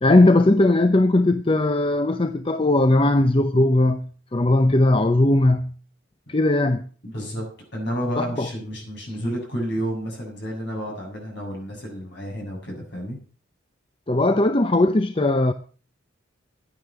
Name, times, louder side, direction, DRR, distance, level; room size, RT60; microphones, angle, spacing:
voice 1, 0.0-5.7 6.3-6.9 8.2-8.5 14.1-15.5, left 2 dB, 25° left, 0.6 m, -19 dB
voice 2, 7.0-7.4 7.7-13.2, equal, 55° left, 7.6 m, -30 dB
10.5 x 9.8 x 7.0 m
head